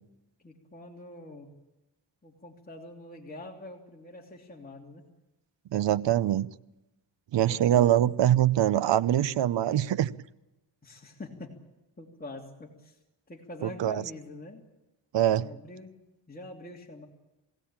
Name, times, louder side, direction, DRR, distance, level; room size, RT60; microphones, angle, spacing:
voice 1, 0.4-1.5 2.2-5.1 7.4-8.0 10.8-11.6 12.0-13.0 13.3-14.6 15.4-16.0 16.3-17.1, left 2 dB, 20° left, -1 dB, 3.0 m, -45 dB
voice 2, 5.7-6.5 7.3-10.1 13.8-14.0 15.1-15.5, right 11 dB, 70° right, 17 dB, 0.8 m, -23 dB
22.5 x 17.0 x 8.8 m, 0.99 s
cardioid pair, 85°, 44 cm